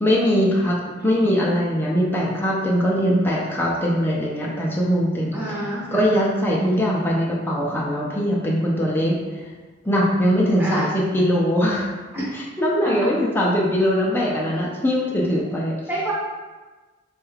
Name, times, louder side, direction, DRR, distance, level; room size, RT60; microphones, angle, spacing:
voice 1, 0.0-5.3 5.9-9.2 9.8-11.9 12.3-15.7, equal, 10° left, -4 dB, 0.4 m, -21 dB
voice 2, 0.9-1.3 5.3-6.1 6.6-6.9 10.6-10.9 12.1-12.2 12.8-12.9 15.9-16.1, right 1 dB, 10° right, -8 dB, 0.7 m, -28 dB
4.2 x 2.3 x 3.2 m, 1.3 s
head